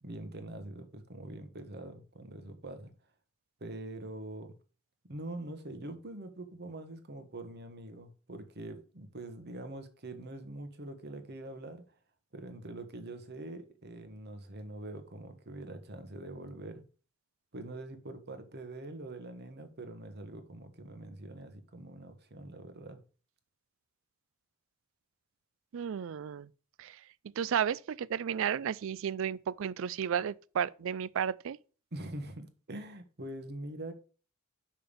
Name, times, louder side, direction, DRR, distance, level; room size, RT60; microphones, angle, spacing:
voice 1, 0.0-2.9 3.6-4.6 5.0-11.8 12.3-16.8 17.5-23.0 31.9-33.9, right 1 dB, 50° right, 1.2 m, -44 dB
voice 2, 25.7-26.5 26.8-27.0 27.4-31.6, right 8 dB, 65° right, 0.4 m, -33 dB
5.8 x 5.3 x 6.8 m
head